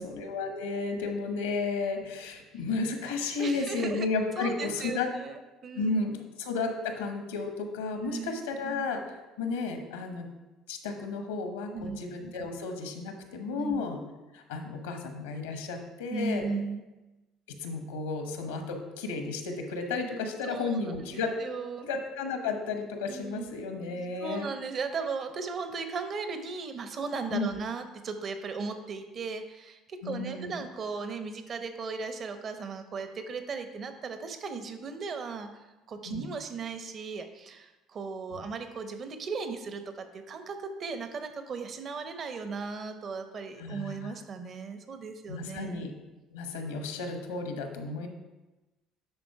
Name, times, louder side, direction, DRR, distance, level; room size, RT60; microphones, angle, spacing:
voice 1, 0.0-5.1 5.8-10.3 10.7-14.0 14.3-16.4 17.5-21.3 21.8-24.5 27.3-27.5 30.0-30.6 36.1-36.3 38.3-38.4 43.6-44.1 45.3-45.9 46.3-48.1, left 4 dB, 90° left, 5 dB, 1.0 m, -33 dB
voice 2, 3.4-4.1 4.4-5.9 8.0-8.4 11.7-12.0 13.6-13.8 16.1-16.8 20.4-21.9 23.1-23.5 24.2-35.5 35.9-45.9, right 4 dB, 45° right, 8 dB, 0.9 m, -37 dB
10.0 x 3.9 x 4.8 m, 1.1 s
hypercardioid pair, 65°, 0 cm